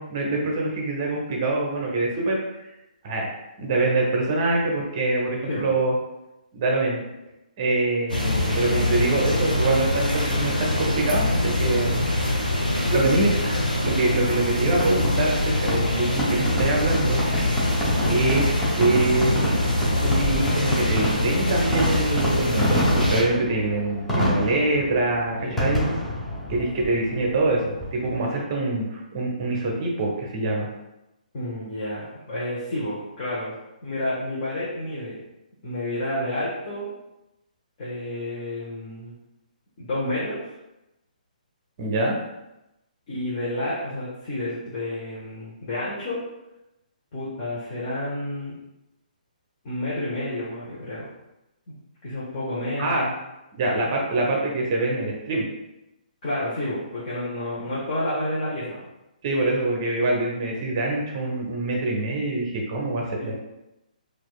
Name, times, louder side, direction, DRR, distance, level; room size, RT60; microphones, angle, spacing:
voice 1, 0.0-2.4 3.0-5.9 6.5-7.0 7.6-12.1 12.9-17.2 18.0-19.4 20.0-25.9 26.5-30.7 41.8-42.1 52.8-53.0 53.5-55.4 59.2-63.3, right 2 dB, 35° right, -1 dB, 0.7 m, -25 dB
sound 1, 8.1-23.2, left 1 dB, 80° left, 0.8 m, -24 dB
Fireworks, 14.8-28.3, equal, 5° left, 0.7 m, -28 dB
voice 2, 25.4-25.7 31.3-33.5 33.8-35.2 35.6-36.9 37.8-39.1 39.8-40.6 43.1-46.2 47.1-48.5 49.6-51.1 51.7-51.8 52.0-53.1 56.2-58.8 63.2-63.3, left 1 dB, 35° left, -8 dB, 0.9 m, -30 dB
4.3 x 2.4 x 2.3 m, 0.93 s
figure-of-eight pair, 130°, 5 cm